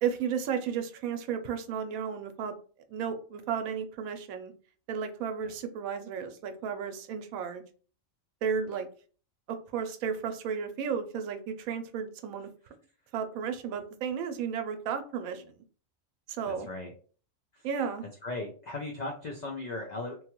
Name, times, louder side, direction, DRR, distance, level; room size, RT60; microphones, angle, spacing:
voice 1, 0.0-2.5 2.9-4.5 4.9-7.6 8.4-8.9 9.5-12.5 13.1-15.4 16.3-16.7 17.6-18.0, right 7 dB, 90° right, 7 dB, 1.0 m, -33 dB
voice 2, 16.5-16.9 17.5-17.7 18.2-20.2, left 2 dB, 85° left, 0 dB, 0.3 m, -38 dB
3.1 x 2.2 x 2.9 m, 0.41 s
omnidirectional pair, 1.4 m